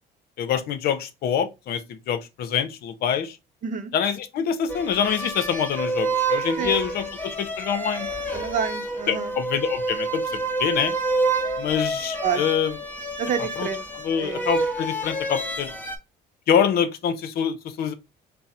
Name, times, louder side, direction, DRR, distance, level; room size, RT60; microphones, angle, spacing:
voice 1, 0.4-3.4 3.9-8.1 9.1-11.0 11.6-12.7 13.6-13.7 14.0-15.7 16.5-17.9, left 8 dB, 70° left, 0.7 m, -25 dB
sound 1, 4.7-16.0, right 2 dB, 10° left, 0.8 m, -28 dB
voice 2, 6.6-7.1 8.3-9.3 12.2-12.4 13.2-13.8 14.2-14.5, right 7 dB, 50° right, 0.7 m, -29 dB
3.7 x 2.0 x 4.2 m
cardioid pair, 110°, 17 cm